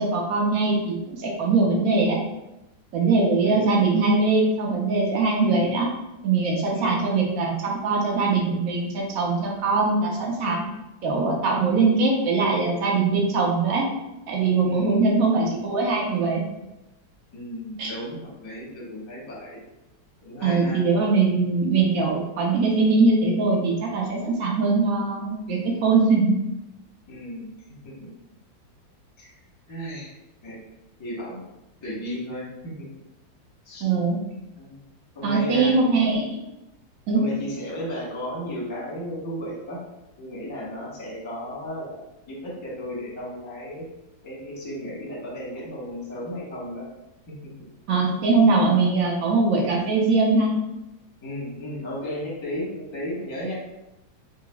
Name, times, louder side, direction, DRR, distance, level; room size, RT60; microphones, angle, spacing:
voice 1, 0.0-2.2 2.9-5.9 6.2-10.6 11.0-13.9 14.3-16.4 17.8-17.9 20.4-26.3 33.8-34.2 35.2-36.4 37.1-37.2 47.9-50.5, right 3 dB, 70° right, -2 dB, 0.8 m, -21 dB
voice 2, 3.4-3.9 5.4-5.9 6.7-7.2 14.6-15.3 17.3-19.6 20.2-20.8 27.1-27.5 27.8-28.1 29.2-29.3 29.7-30.1 30.4-30.6 31.0-31.4 31.8-32.9 33.6-33.9 34.6-34.8 35.1-35.8 37.1-39.8 40.2-43.8 44.2-46.9 47.3-47.5 51.2-53.5, equal, 25° left, -6 dB, 0.7 m, -34 dB
4.7 x 2.0 x 2.3 m, 0.93 s
omnidirectional pair, 2.1 m